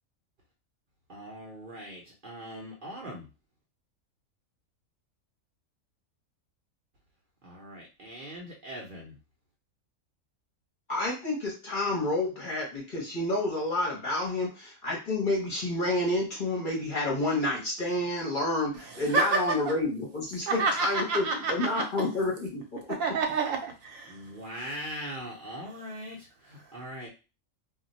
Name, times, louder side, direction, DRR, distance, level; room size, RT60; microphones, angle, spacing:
voice 1, 1.1-3.3 7.4-9.2 24.1-27.1, equal, 50° right, -3 dB, 0.7 m, -41 dB
voice 2, 10.9-22.8, left 2 dB, 45° left, -2 dB, 0.8 m, -29 dB
voice 3, 18.9-19.6 20.5-22.1 22.9-24.2, right 3 dB, 75° right, 3 dB, 1.1 m, -29 dB
2.4 x 2.2 x 3.9 m, 0.31 s
omnidirectional pair, 1.4 m